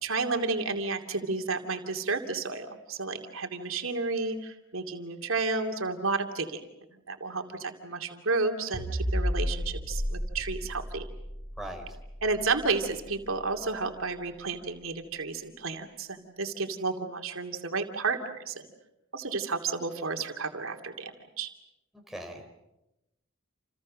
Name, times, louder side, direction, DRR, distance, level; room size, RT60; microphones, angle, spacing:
voice 1, 0.0-6.6 7.1-11.0 12.2-18.6 19.1-21.5, right 3 dB, 85° right, 5 dB, 2.7 m, -31 dB
sound 1, 8.7-13.2, equal, 45° left, 7.5 m, -33 dB
voice 2, 11.6-12.0 22.1-22.5, right 1 dB, ahead, 1 dB, 4.1 m, -40 dB
29.0 x 29.0 x 6.5 m, 0.93 s
head